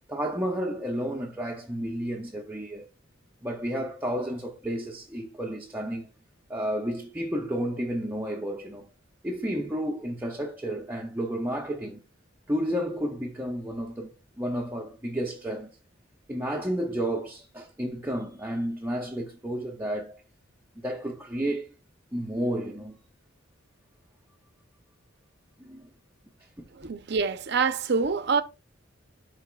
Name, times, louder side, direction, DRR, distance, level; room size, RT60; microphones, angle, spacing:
voice 1, 0.0-2.8 3.4-6.1 6.5-8.9 9.2-12.0 12.5-15.7 16.3-20.2 20.8-21.7 22.1-23.0 25.6-25.8 26.6-26.9, equal, 10° right, 0.6 m, -31 dB
voice 2, 26.7-28.4, right 5 dB, 55° right, 0.6 m, -26 dB
11.5 x 4.0 x 2.3 m
head